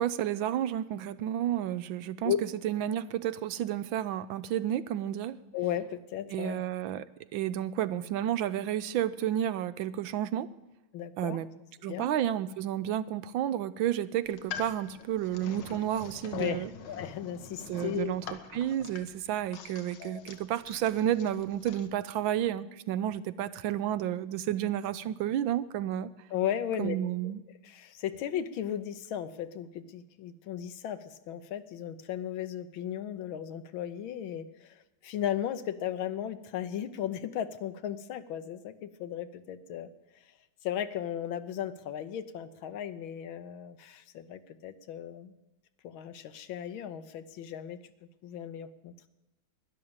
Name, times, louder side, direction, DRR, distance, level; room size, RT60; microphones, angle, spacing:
voice 1, 0.0-2.3 2.6-5.4 6.3-7.0 7.3-10.5 11.2-11.5 11.8-16.7 17.7-18.2 18.5-26.1 26.8-27.4, right 11 dB, 80° right, 15 dB, 1.4 m, -31 dB
voice 2, 5.5-6.6 10.9-11.4 11.9-12.1 16.3-18.1 20.0-20.2 26.3-27.0 27.2-27.3 27.6-39.9 40.6-45.3 45.8-47.8 48.2-49.1, left 10 dB, 85° left, 12 dB, 1.7 m, -36 dB
sound 1, 14.2-21.9, left 6 dB, 70° left, 1.7 m, -45 dB
12.0 x 11.0 x 8.7 m, 1.0 s
omnidirectional pair, 2.1 m